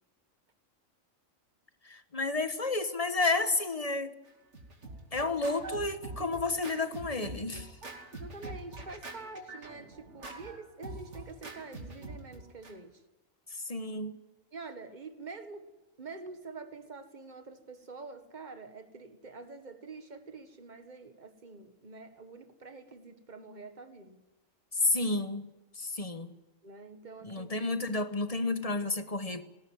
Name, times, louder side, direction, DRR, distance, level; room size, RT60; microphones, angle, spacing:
voice 1, 1.8-4.1 5.1-7.7 13.7-14.2 24.8-25.5 25.8-26.3 27.2-29.4, left 3 dB, 30° left, 1.3 m, -31 dB
Scratching (performance technique), 4.3-12.7, right 2 dB, 60° right, 2.9 m, -45 dB
voice 2, 8.2-13.0 14.5-15.7 16.0-24.2 26.6-27.5, right 4 dB, 35° right, 1.8 m, -46 dB
18.5 x 18.0 x 9.4 m
omnidirectional pair, 1.4 m